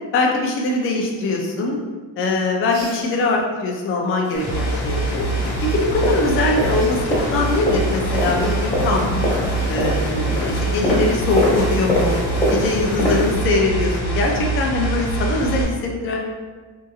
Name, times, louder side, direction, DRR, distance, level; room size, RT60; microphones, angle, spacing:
voice 1, 0.1-1.8 2.2-5.3 5.7-9.1 9.7-12.2 12.5-16.2, left 3 dB, 30° left, 0 dB, 0.4 m, -22 dB
sound 1, 2.7-3.1 4.6-4.7 5.6-5.8 6.6-6.9 8.1-8.6 9.6-9.7 11.8-12.0, right 2 dB, 80° right, 1.1 m, -41 dB
sound 2, 4.2-13.4, equal, 10° left, 1.3 m, -25 dB
sound 3, 4.3-15.6, right 2 dB, 55° left, 0.8 m, -24 dB
2.7 x 2.6 x 2.3 m, 1.4 s
cardioid pair, 115°, 45 cm